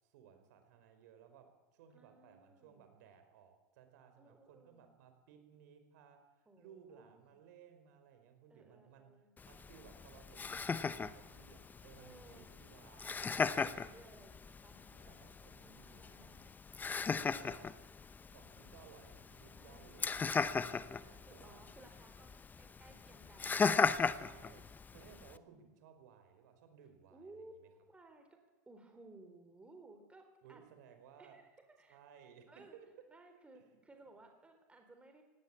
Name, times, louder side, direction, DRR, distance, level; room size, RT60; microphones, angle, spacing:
voice 1, 0.0-13.7 14.8-16.5 17.1-17.8 18.3-21.6 24.2-27.4 30.4-31.4 31.9-32.9 33.5-33.8, right 8 dB, 75° right, 7 dB, 4.8 m, -61 dB
voice 2, 1.9-2.9 4.2-4.8 6.5-7.4 8.5-9.3 12.0-12.5 13.0-14.8 15.0-15.2 15.6-16.4 16.8-17.7 19.5-20.4 21.2-24.2 25.1-25.7 27.1-28.4 28.7-30.6 31.2-32.0 32.5-32.7 33.1-35.2, right 2 dB, 10° right, 5 dB, 4.1 m, -60 dB
Laughter, 9.4-25.4, left 5 dB, 20° left, 0.9 m, -38 dB
18.5 x 17.5 x 8.5 m, 1.2 s
supercardioid pair, 110°, 10 cm